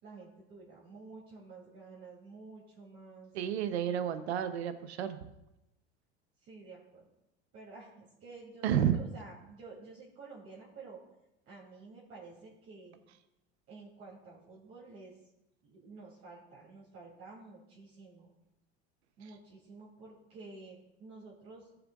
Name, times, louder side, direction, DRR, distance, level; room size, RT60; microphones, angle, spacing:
voice 1, 0.0-3.3 6.4-7.1 7.5-11.0 11.5-13.0 13.7-15.2 15.6-18.3 19.2-21.8, right 3 dB, 45° right, -6 dB, 3.0 m, -51 dB
voice 2, 3.3-5.2 8.6-9.0, right 9 dB, 90° right, 10 dB, 0.8 m, -30 dB
14.5 x 6.8 x 2.4 m, 0.88 s
supercardioid pair, 105°, 32 cm